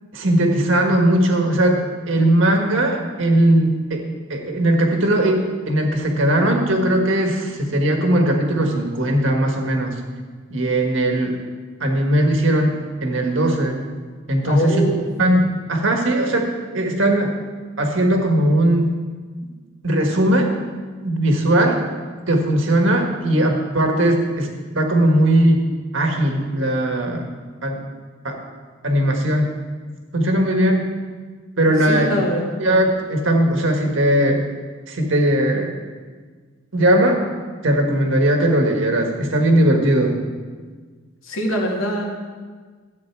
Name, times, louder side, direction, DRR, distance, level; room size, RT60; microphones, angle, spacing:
voice 1, 0.1-4.0 4.3-9.9 10.5-11.4 11.8-13.8 14.3-14.8 15.2-17.3 17.8-18.9 19.8-20.6 21.0-21.8 22.3-24.5 24.7-25.6 25.9-27.3 27.6-27.8 28.2-28.4 28.8-29.5 30.1-30.9 31.6-32.2 32.6-34.4 34.9-35.7 36.7-37.2 37.6-40.2, right 1 dB, 70° right, 3 dB, 1.6 m, -18 dB
voice 2, 14.4-15.0 21.5-21.8 31.9-32.5 41.2-42.1, equal, 85° left, -1 dB, 2.3 m, -23 dB
13.5 x 8.5 x 4.7 m, 1.5 s
head